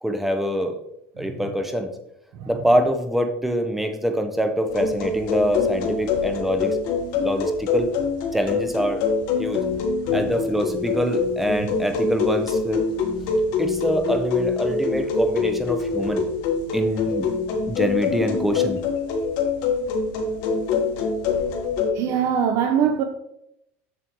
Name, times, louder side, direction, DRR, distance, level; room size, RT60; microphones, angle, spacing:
voice 1, 0.0-0.8 1.2-1.9 2.5-6.8 7.2-7.9 8.3-9.0 9.4-9.6 10.1-12.8 13.6-16.2 16.7-17.3 17.7-18.8, equal, 5° right, 0.8 m, -24 dB
sound 1, 4.7-21.9, left 4 dB, 65° left, 1.4 m, -25 dB
voice 2, 21.9-23.0, right 8 dB, 55° right, 0.6 m, -22 dB
7.5 x 6.7 x 3.0 m
supercardioid pair, 130°, 6 cm